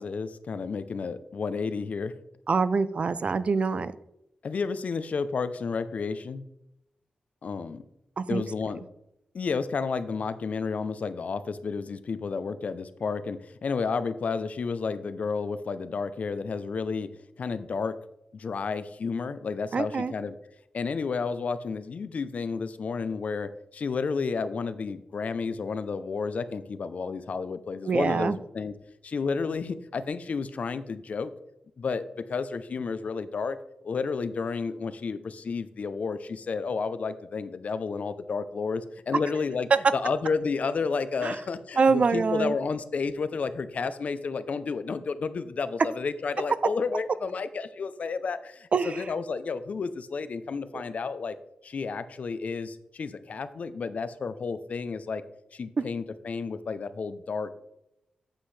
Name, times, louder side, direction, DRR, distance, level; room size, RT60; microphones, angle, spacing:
voice 1, 0.0-2.1 4.4-6.4 7.4-7.8 8.3-8.8 9.3-17.1 17.4-18.0 18.3-20.3 20.7-28.7 29.0-31.3 31.8-33.6 33.8-51.4 51.6-55.2 55.5-57.5, left 5 dB, 60° left, 12 dB, 0.6 m, -31 dB
voice 2, 2.5-3.9 8.2-8.4 19.7-20.1 27.9-28.4 41.2-41.4 41.8-42.5 48.7-49.0, right 4 dB, 50° right, 15 dB, 0.4 m, -25 dB
8.8 x 7.5 x 3.3 m, 0.83 s
wide cardioid pair, 105°, 3 cm